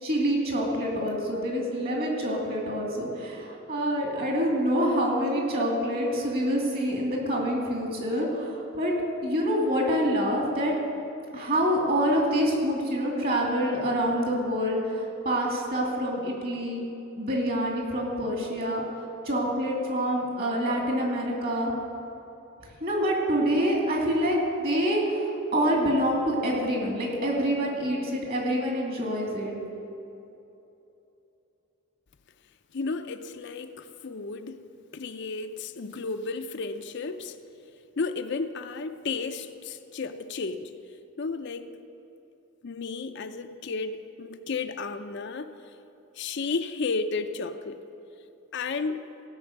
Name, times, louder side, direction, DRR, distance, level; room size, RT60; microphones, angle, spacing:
voice 1, 0.0-8.9 9.2-10.7 11.3-16.8 17.2-21.7 22.8-29.5, equal, 45° right, -1 dB, 2.7 m, -26 dB
voice 2, 32.7-34.6 34.9-37.4 38.0-40.7 41.2-41.7 42.6-45.5 46.2-47.8 48.5-49.0, left 4 dB, 55° left, 8 dB, 0.5 m, -33 dB
16.0 x 6.1 x 8.0 m, 2.9 s
head